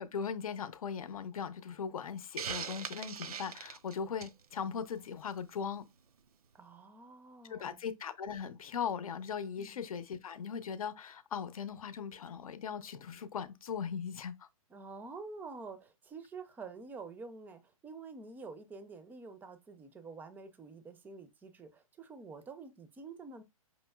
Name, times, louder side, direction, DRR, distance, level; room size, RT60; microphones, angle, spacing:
voice 1, 0.0-5.8 7.4-14.5, left 7 dB, 75° left, 0.7 m, -39 dB
Hiss, 2.4-4.4, right 7 dB, 85° right, 0.5 m, -40 dB
voice 2, 6.5-7.8 9.6-9.8 14.7-23.4, right 4 dB, 10° right, 0.5 m, -48 dB
5.3 x 3.0 x 2.2 m
hypercardioid pair, 135°, 19 cm